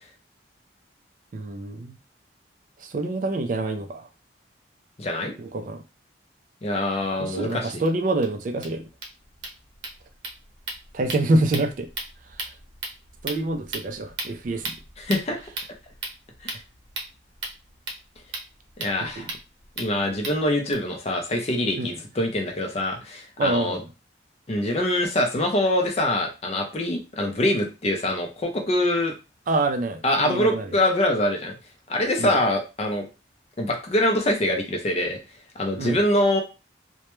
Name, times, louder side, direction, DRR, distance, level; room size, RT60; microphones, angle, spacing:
voice 1, 1.3-2.0 2.8-4.1 5.4-5.8 7.2-8.9 10.9-11.9 13.2-14.8 19.0-19.3 21.8-22.0 23.4-23.9 29.5-30.7 32.2-32.4 35.8-35.9, right 2 dB, 45° right, 0.3 m, -26 dB
voice 2, 5.0-5.3 6.6-7.8 15.0-15.4 16.4-16.6 18.8-19.3 19.8-23.8 24.5-29.1 30.0-31.5 31.9-33.1 33.6-35.2 35.6-36.4, left 1 dB, 35° left, 0.5 m, -24 dB
sound 1, 7.5-7.6 7.9-8.0 8.2-8.3 8.5-20.7, right 3 dB, 80° right, 0.7 m, -37 dB
2.1 x 2.1 x 2.9 m
head